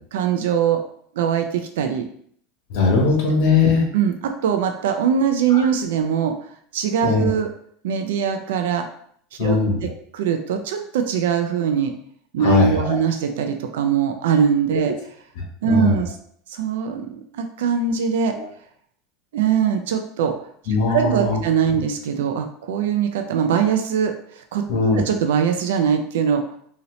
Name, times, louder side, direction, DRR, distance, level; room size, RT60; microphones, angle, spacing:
voice 1, 0.1-0.8 1.2-2.1 3.9-6.3 6.7-7.5 7.8-8.9 9.4-9.6 10.1-11.9 12.3-14.9 15.6-16.1 16.5-18.4 19.3-20.3 20.9-24.6 24.9-26.4, right 7 dB, 90° right, 6 dB, 0.3 m, -21 dB
voice 2, 2.7-3.8 5.5-5.7 7.0-7.3 9.4-9.8 12.4-13.0 15.4-16.0 18.3-18.5 20.7-21.4 24.7-25.0, left 4 dB, 60° left, 0 dB, 0.9 m, -20 dB
2.8 x 2.8 x 3.0 m, 0.63 s
supercardioid pair, 170°, 0 cm